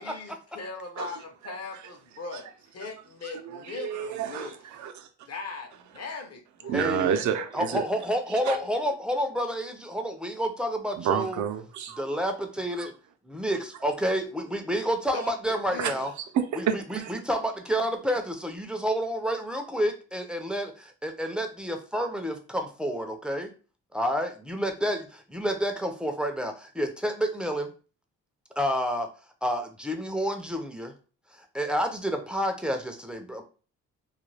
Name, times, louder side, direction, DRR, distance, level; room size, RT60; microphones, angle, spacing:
voice 1, 0.0-2.5 2.7-4.5 5.3-6.8 8.4-8.9 15.1-16.0, left 3 dB, 50° left, 0.8 m, -39 dB
voice 2, 3.4-5.1 6.6-7.8 8.3-8.6 11.0-12.1 12.8-12.9 15.8-15.9 16.3-17.1, right 8 dB, 65° right, 0.5 m, -29 dB
voice 3, 6.7-7.1 7.5-11.4 12.0-12.9 13.3-16.1 16.6-16.7 16.9-23.5 23.9-27.7 28.6-29.1 29.4-30.9 31.5-33.4, equal, 5° right, 0.4 m, -29 dB
2.4 x 2.2 x 3.2 m
cardioid pair, 75°, 32 cm